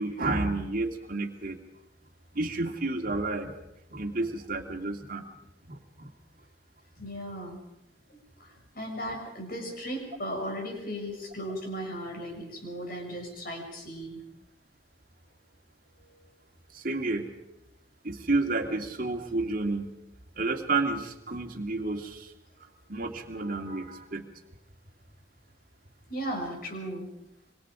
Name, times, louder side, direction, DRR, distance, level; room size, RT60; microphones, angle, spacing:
voice 1, 0.0-1.6 2.3-3.6 3.9-5.3 5.7-6.1 16.7-17.3 18.0-20.0 20.4-22.3 22.9-24.3, right 2 dB, 45° right, 3 dB, 2.5 m, -30 dB
voice 2, 7.0-7.6 8.1-14.2 16.0-16.3 26.1-27.1, equal, 50° left, 2 dB, 6.7 m, -37 dB
26.5 x 24.5 x 5.1 m, 0.82 s
head